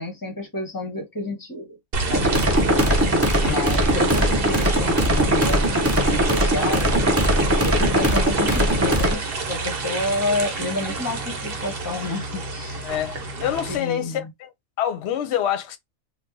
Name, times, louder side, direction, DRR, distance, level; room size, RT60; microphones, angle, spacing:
voice 1, 0.0-1.8 2.1-2.8 3.4-6.9 7.6-12.9 13.7-14.3, left 2 dB, 15° left, 0.8 m, -30 dB
sound 1, 1.9-13.8, right 4 dB, 50° right, 1.0 m, -29 dB
sound 2, 2.1-9.1, equal, 20° right, 0.4 m, -20 dB
voice 2, 3.3-3.7 12.8-14.5 14.8-15.8, left 10 dB, 60° left, 0.8 m, -27 dB
2.8 x 2.3 x 3.7 m
omnidirectional pair, 1.4 m